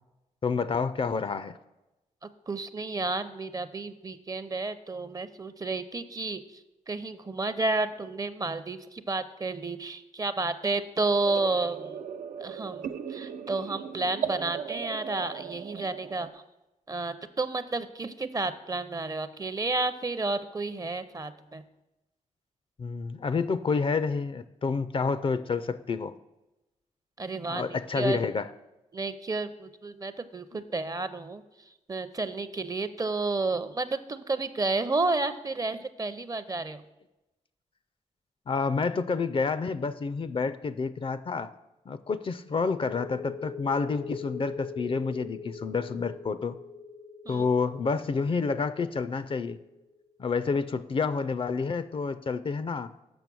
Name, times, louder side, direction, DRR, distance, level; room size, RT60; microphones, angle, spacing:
voice 1, 0.4-1.6 22.8-26.1 27.5-28.5 30.5-30.6 38.5-41.5 41.9-46.6 47.3-49.6 50.2-52.9, left 4 dB, 40° left, 14 dB, 0.4 m, -29 dB
voice 2, 2.2-12.0 12.4-16.4 16.9-21.6 27.2-28.2 28.9-31.4 31.9-36.8 47.3-47.4, right 3 dB, 25° right, 12 dB, 0.6 m, -31 dB
sound 1, 11.2-16.3, right 7 dB, 80° right, 0.5 m, -37 dB
sound 2, 42.5-49.9, left 5 dB, 70° left, 0.8 m, -42 dB
7.0 x 5.9 x 6.1 m, 0.98 s
cardioid pair, 70°, 14 cm